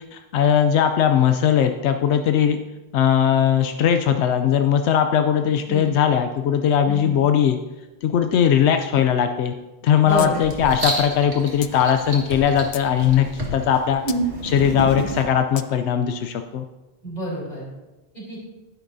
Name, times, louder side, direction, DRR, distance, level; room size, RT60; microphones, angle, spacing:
voice 1, 0.1-2.6 2.9-7.6 8.0-9.5 9.8-14.0 14.4-16.6, left 8 dB, 90° left, 6 dB, 0.9 m, -19 dB
voice 2, 6.9-7.2 10.0-10.4 17.0-17.7 18.1-18.4, right 2 dB, 40° left, -5 dB, 3.9 m, -29 dB
Writing, 10.1-15.2, right 2 dB, 80° right, 2.1 m, -30 dB
sound 1, 10.2-10.3 10.6-10.7 11.6-11.7 12.4-12.9 14.1-14.2 15.6-15.7, left 8 dB, 55° left, 0.4 m, -35 dB
12.0 x 10.5 x 2.7 m, 1.1 s
omnidirectional pair, 1.1 m